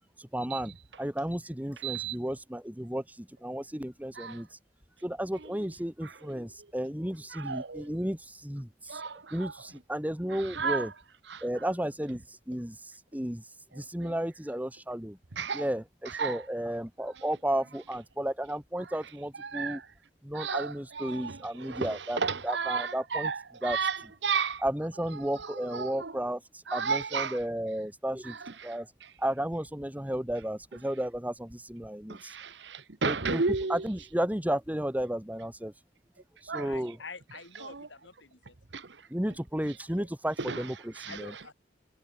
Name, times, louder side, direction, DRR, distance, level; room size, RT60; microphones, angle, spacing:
voice 1, 0.2-4.5 5.0-9.0 9.3-10.9 11.4-12.8 13.1-13.4 13.8-15.2 15.5-19.8 20.2-23.3 23.6-23.8 24.6-26.4 26.7-28.4 28.6-28.9 29.2-32.3 33.0-33.4 33.7-35.7 36.4-37.0 39.1-41.3, right 1 dB, 10° right, 2.0 m, -33 dB
voice 2, 1.8-2.2 4.2-4.4 6.0-6.1 7.3-7.9 8.9-9.5 10.5-10.9 11.3-11.4 14.0-14.1 15.3-15.6 16.1-16.4 19.4-19.8 20.3-24.6 25.4-26.1 26.7-27.4 28.3-28.7 32.1-33.9 36.5-36.7 37.6-37.9 38.7-39.0 40.4-40.6 41.0-41.2, right 5 dB, 70° right, 1.2 m, -33 dB
voice 3, 36.6-38.6 41.1-41.5, left 4 dB, 90° left, 7.8 m, -47 dB
head